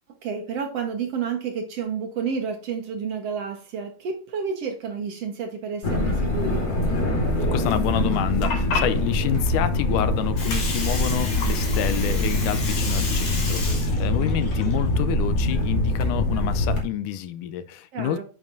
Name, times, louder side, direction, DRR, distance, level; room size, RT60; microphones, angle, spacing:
voice 1, 0.2-6.7 17.9-18.2, right 6 dB, 60° right, 1.9 m, -30 dB
sound 1, 5.8-16.8, left 1 dB, 35° left, 2.9 m, -24 dB
voice 2, 7.5-18.2, left 11 dB, 80° left, 2.1 m, -28 dB
Water, 8.3-16.0, left 4 dB, 60° left, 4.5 m, -33 dB
10.0 x 7.4 x 2.6 m
omnidirectional pair, 3.8 m